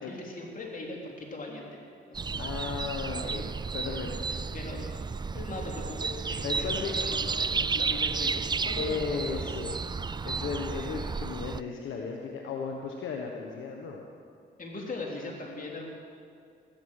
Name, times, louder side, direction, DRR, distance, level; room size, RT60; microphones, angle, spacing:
voice 1, 0.0-1.7 2.1-2.6 3.2-3.4 4.5-4.8 5.3-9.6 14.6-15.9, left 2 dB, 45° left, -1 dB, 3.5 m, -40 dB
sound 1, 2.1-11.6, right 5 dB, 20° right, 0.4 m, -32 dB
voice 2, 2.4-3.4 3.7-4.6 6.4-7.0 8.8-10.0 10.2-14.0, left 5 dB, 80° left, 1 dB, 1.3 m, -35 dB
15.0 x 13.0 x 6.6 m, 2.4 s
cardioid pair, 70°, 20 cm